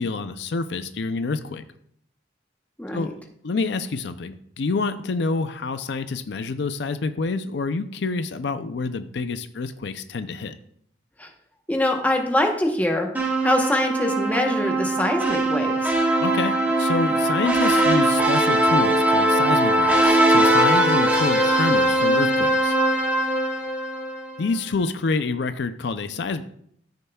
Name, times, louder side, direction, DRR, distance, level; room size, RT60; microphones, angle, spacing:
voice 1, 0.0-1.6 2.9-10.5 16.2-22.8 24.4-26.4, left 3 dB, 70° left, 11 dB, 0.5 m, -27 dB
voice 2, 2.8-3.1 11.2-11.3 11.7-13.1 13.4-15.9, left 1 dB, 10° left, 3 dB, 0.9 m, -23 dB
sound 1, 13.1-24.4, right 1 dB, 10° right, 1.3 m, -20 dB
13.5 x 6.6 x 2.3 m, 0.68 s
head